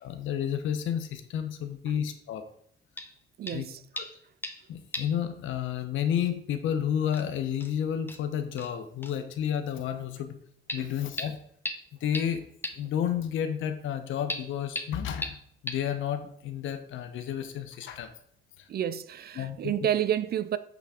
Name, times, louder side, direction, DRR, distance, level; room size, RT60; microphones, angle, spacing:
voice 1, 0.0-2.4 3.5-3.7 3.9-4.1 4.7-10.4 10.7-11.4 12.0-12.4 12.8-18.1 18.6-18.7 19.3-19.9, left 9 dB, 80° left, 0.7 m, -31 dB
sound 1, 3.0-3.1 3.5-3.7 4.0-4.6 4.9-5.2 5.5-5.6 6.6-6.7 7.1-7.2 7.6-7.7 8.1-8.2 8.6-8.7 9.0-9.2 10.7-10.8 11.2-11.3 11.6-11.8 12.1-12.2 12.6-12.7 14.3-14.4 14.8-14.9 15.2-15.3 15.7-15.8, left 1 dB, 10° left, 0.8 m, -35 dB
voice 2, 3.4-3.8 18.7-20.6, right 10 dB, 50° right, 0.5 m, -29 dB
8.3 x 3.4 x 4.9 m
cardioid pair, 90°, 20 cm